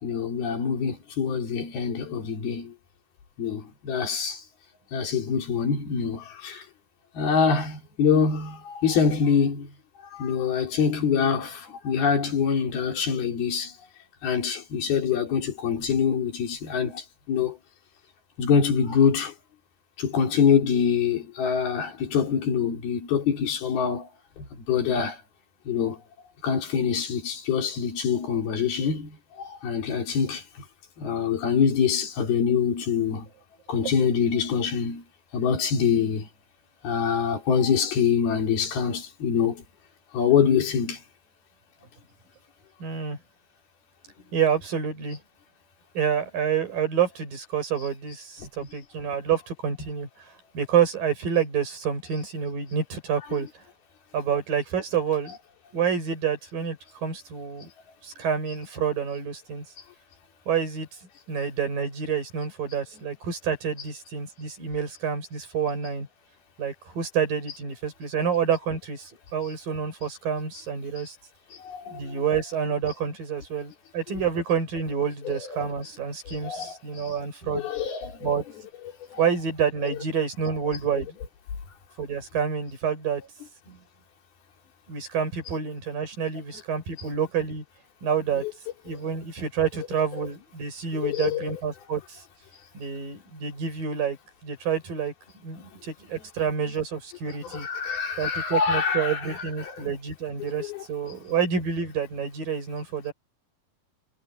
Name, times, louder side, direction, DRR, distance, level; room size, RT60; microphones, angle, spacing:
voice 1, 0.0-2.7 3.4-4.4 4.9-6.6 7.2-9.7 10.1-13.7 14.2-17.6 18.4-19.3 20.0-24.1 24.4-25.2 25.7-26.0 26.4-29.2 29.4-30.4 31.0-33.3 33.7-35.0 35.3-36.3 36.8-39.6 40.1-41.0 71.5-72.2 75.3-75.7 76.3-77.1 77.5-78.3 79.1-79.2 83.7-83.8 88.4-88.5 90.2-90.3 91.0-91.5 97.4-99.4 99.6-99.9 100.6-100.8, left 6 dB, 80° left, 5.4 m, -25 dB
voice 2, 42.8-43.2 44.3-45.2 45.9-50.1 50.5-53.5 54.1-55.4 55.7-57.7 58.0-59.6 60.5-60.9 61.3-66.1 66.6-71.2 71.9-77.7 78.2-78.4 79.2-81.2 82.0-83.2 84.9-87.6 88.0-88.4 88.8-92.2 92.7-94.2 94.4-95.1 95.4-97.7 98.2-103.1, right 7 dB, 65° right, 7.8 m, -28 dB
omnidirectional pair, 4.3 m